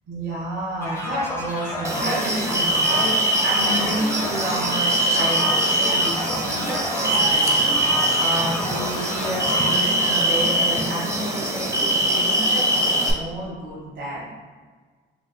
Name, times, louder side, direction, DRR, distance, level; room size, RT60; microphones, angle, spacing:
voice 1, 0.1-7.6 8.1-14.2, right 1 dB, 60° right, -8 dB, 1.5 m, -30 dB
sound 1, 0.8-10.5, left 1 dB, 15° left, 1.0 m, -31 dB
sound 2, 1.8-13.1, right 1 dB, 15° right, 0.5 m, -22 dB
4.0 x 3.0 x 2.2 m, 1.5 s
cardioid pair, 90°, 20 cm